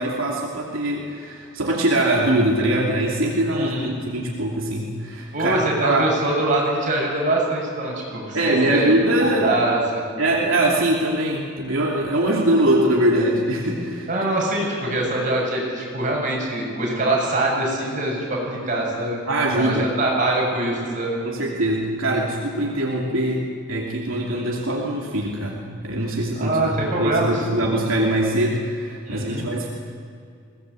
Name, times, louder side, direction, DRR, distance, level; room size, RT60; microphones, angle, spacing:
voice 1, 0.0-6.1 8.3-9.6 10.2-14.1 19.3-19.9 21.3-29.7, right 1 dB, 80° right, -3 dB, 2.9 m, -22 dB
voice 2, 3.5-3.9 5.3-8.4 8.7-8.8 9.2-9.8 14.1-19.2 19.5-21.2 26.4-27.4 29.1-29.5, right 2 dB, 40° right, -2 dB, 7.1 m, -23 dB
22.0 x 18.5 x 8.0 m, 2.3 s
head